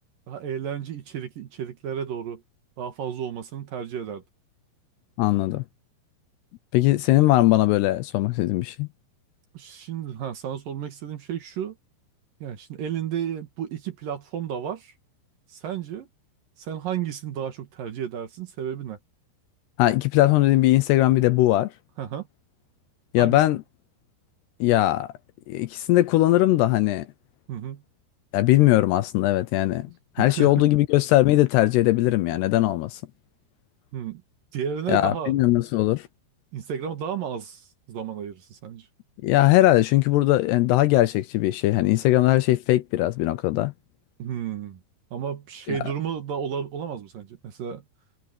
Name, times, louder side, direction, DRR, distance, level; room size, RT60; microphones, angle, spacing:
voice 1, 0.3-2.4 2.8-4.2 9.5-11.8 12.4-14.9 15.5-16.1 16.6-19.0 22.0-22.3 23.2-23.4 27.5-27.8 30.2-30.7 33.9-34.2 34.5-35.4 36.5-38.9 44.2-44.8 45.1-47.8, right 8 dB, 60° right, 2.8 m, -32 dB
voice 2, 5.2-5.6 6.7-8.9 19.8-21.7 23.1-23.6 24.6-25.1 25.5-27.1 28.3-29.9 30.2-33.0 34.9-36.1 39.2-43.7 45.7-45.8, left 16 dB, 75° left, 2.6 m, -20 dB
omnidirectional pair, 5.3 m